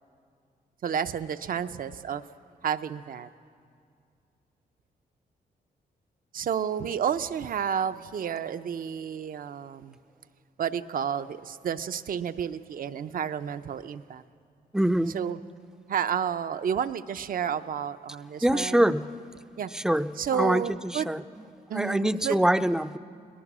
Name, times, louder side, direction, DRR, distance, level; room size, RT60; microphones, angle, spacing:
voice 1, 0.8-2.2 2.6-3.3 6.3-10.0 10.6-14.2 15.1-15.4 15.9-19.0 19.6-19.7 20.2-21.1 21.7-22.4, right 8 dB, 60° right, 0.6 m, -31 dB
voice 2, 14.7-15.1 18.4-19.1 19.8-20.6 20.9-21.2 21.7-23.0, right 1 dB, 5° right, 0.5 m, -24 dB
22.0 x 19.0 x 6.1 m
cardioid pair, 110°, 16 cm